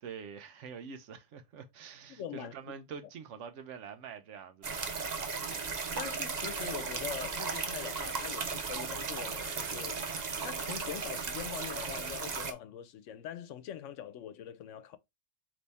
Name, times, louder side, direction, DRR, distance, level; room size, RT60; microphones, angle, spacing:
voice 1, 0.0-5.0, right 6 dB, 75° right, 1.0 m, -46 dB
voice 2, 2.1-2.5 6.0-10.1 10.4-15.0, left 10 dB, 85° left, 1.0 m, -43 dB
sound 1, 4.6-12.5, right 5 dB, 45° right, 0.7 m, -36 dB
4.1 x 3.1 x 3.4 m
omnidirectional pair, 1.3 m